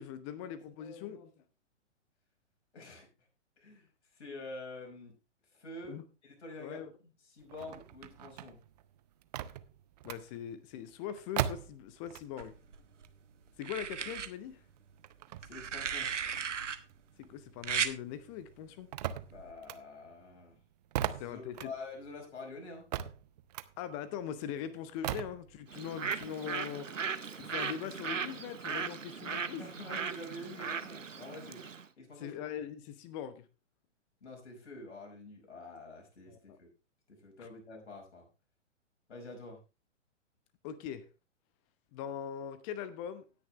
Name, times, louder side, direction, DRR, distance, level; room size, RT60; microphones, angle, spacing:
voice 1, 0.0-1.3 5.9-6.0 6.6-6.9 10.0-12.5 13.6-14.6 17.2-18.9 21.2-21.7 23.8-26.9 27.3-29.7 32.2-33.4 36.3-36.6 40.6-41.1 41.9-43.2, left 9 dB, 25° left, 14 dB, 0.9 m, -41 dB
voice 2, 2.7-3.1 3.6-5.2 5.5-6.8 7.2-8.6 15.4-16.1 19.3-20.6 21.1-22.8 29.6-31.6 32.0-32.4 34.2-36.7 37.1-38.3 39.1-39.6, left 2 dB, 65° left, 1 dB, 5.5 m, -47 dB
sound 1, 7.4-12.6 12.9-17.7 18.0-26.3, right 11 dB, 35° right, 0.6 m, -41 dB
sound 2, 12.4-13.1 13.6-14.3 15.4-16.8 17.6-17.9 19.3-19.5, right 7 dB, 75° right, 1.2 m, -35 dB
Bird, 25.7-31.8, right 6 dB, 90° right, 0.9 m, -38 dB
17.5 x 6.7 x 3.2 m, 0.30 s
figure-of-eight pair, 120°, 37 cm